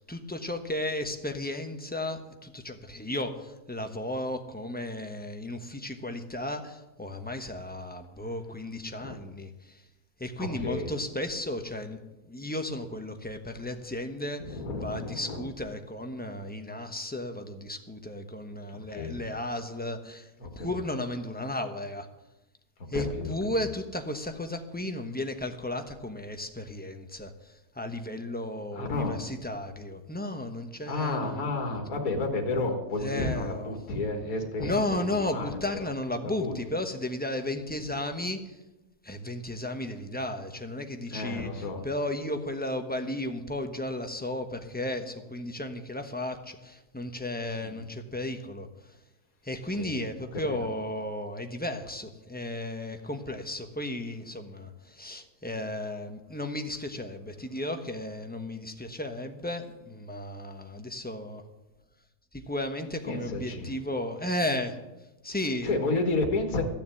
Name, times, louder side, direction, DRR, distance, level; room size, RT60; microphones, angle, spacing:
voice 1, 0.0-9.8 10.2-22.1 22.9-31.5 33.0-33.7 34.6-38.6 39.0-49.0 49.4-61.4 62.3-64.8 65.2-65.7, left 1 dB, 5° left, 5 dB, 0.9 m, -34 dB
voice 2, 10.4-10.9 14.4-15.4 18.7-19.2 20.4-20.8 22.9-23.3 28.7-29.2 30.9-35.9 36.1-36.5 41.1-41.9 47.6-47.8 49.7-50.0 50.3-50.6 63.1-63.7 65.6-66.6, left 2 dB, 65° left, 3 dB, 2.1 m, -31 dB
15.0 x 7.1 x 9.1 m, 1.0 s
omnidirectional pair, 1.7 m